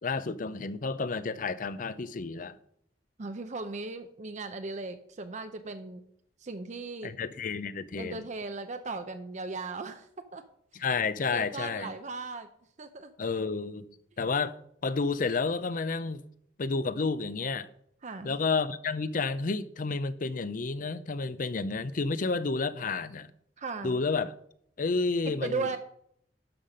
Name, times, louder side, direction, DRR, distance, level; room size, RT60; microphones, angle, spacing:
voice 1, 0.0-2.6 7.0-8.2 10.7-11.9 13.2-13.9 14.2-16.2 16.6-17.7 18.2-23.3 23.8-24.3 24.8-25.8, left 4 dB, 50° left, 0.5 m, -31 dB
voice 2, 3.2-6.0 6.4-7.1 8.0-10.4 10.7-10.8 11.3-12.5 12.8-13.1 18.0-18.4 23.6-24.0 25.3-25.8, right 3 dB, 40° right, 0.6 m, -37 dB
12.0 x 5.7 x 5.1 m
head